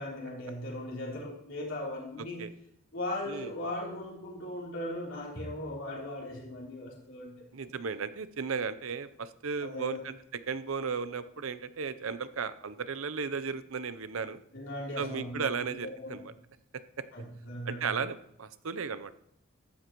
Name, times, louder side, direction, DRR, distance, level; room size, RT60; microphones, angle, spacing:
voice 1, 0.0-2.4 2.9-7.7 9.6-10.0 14.5-15.5 15.8-16.2 17.1-17.9, left 1 dB, 65° left, -3 dB, 3.5 m, -38 dB
voice 2, 7.5-10.2 10.5-14.4 15.0-16.3 16.7-17.0 17.7-19.1, right 5 dB, 90° right, 13 dB, 0.7 m, -35 dB
15.0 x 12.5 x 3.1 m, 0.75 s
head